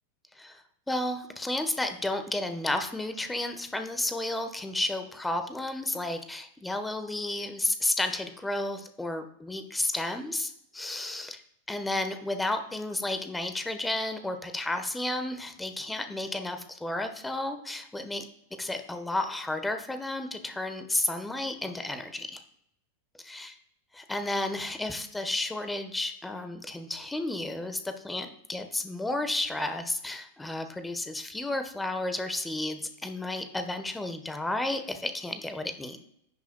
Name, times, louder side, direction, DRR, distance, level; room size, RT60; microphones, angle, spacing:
voice 1, 0.3-11.4 11.7-18.2 18.6-22.4 23.2-23.5 24.0-36.0, left 2 dB, 5° left, 8 dB, 1.2 m, -32 dB
16.5 x 6.1 x 2.3 m, 0.74 s
figure-of-eight pair, 90°, 0 cm